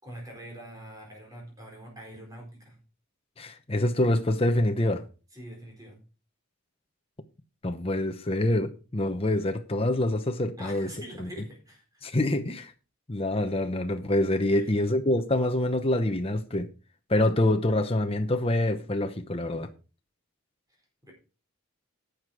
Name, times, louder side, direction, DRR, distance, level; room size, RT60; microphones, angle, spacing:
voice 1, 0.0-2.8 5.3-6.0 10.6-12.0 14.5-14.7 21.0-21.1, equal, 15° right, 4.3 m, -44 dB
voice 2, 3.4-5.0 7.6-10.9 11.2-11.3 12.0-12.7 13.1-16.7 17.1-19.7, left 1 dB, 25° left, 0.9 m, -26 dB
11.5 x 7.7 x 4.8 m
head